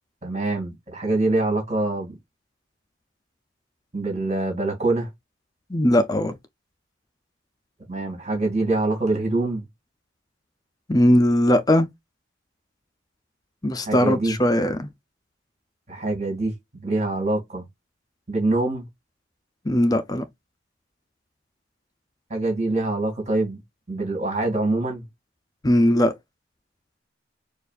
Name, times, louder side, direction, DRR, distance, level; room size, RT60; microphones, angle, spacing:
voice 1, 0.2-2.1 3.9-5.1 7.9-9.6 13.9-14.4 15.9-17.6 18.3-18.8 22.3-23.6 23.9-25.0, right 2 dB, 35° right, 2.4 m, -24 dB
voice 2, 5.7-6.3 10.9-11.9 13.6-14.9 19.7-20.2 25.6-26.1, left 1 dB, 20° left, 0.5 m, -19 dB
6.8 x 2.5 x 2.4 m
head